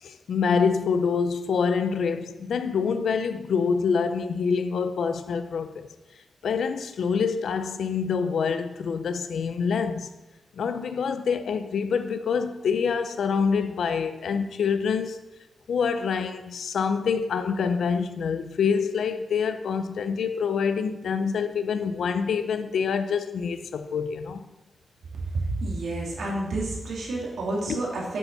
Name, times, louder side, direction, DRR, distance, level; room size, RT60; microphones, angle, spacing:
voice 1, 0.0-5.9 6.4-10.1 10.6-15.2 15.7-24.5 27.7-27.8, left 6 dB, 90° left, 0.5 m, -26 dB
voice 2, 25.3-28.2, right 2 dB, 80° right, 2.7 m, -29 dB
8.2 x 7.1 x 5.4 m
wide cardioid pair, 180°, 0 cm